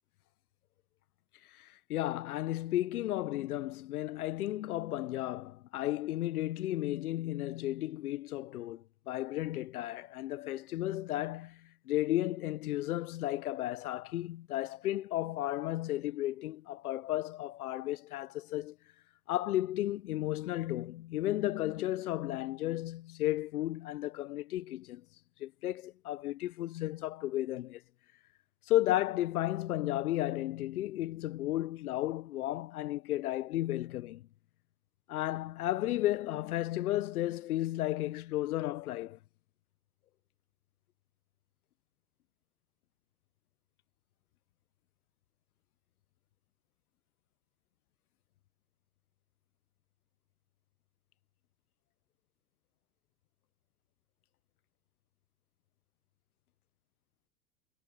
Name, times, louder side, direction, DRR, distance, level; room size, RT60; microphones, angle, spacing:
voice 1, 1.6-11.6 11.9-18.7 19.3-25.0 25.4-27.8 28.7-34.2 35.1-39.2, left 14 dB, 60° left, 1.1 m, -33 dB
figure-of-eight pair, 85°, 49 cm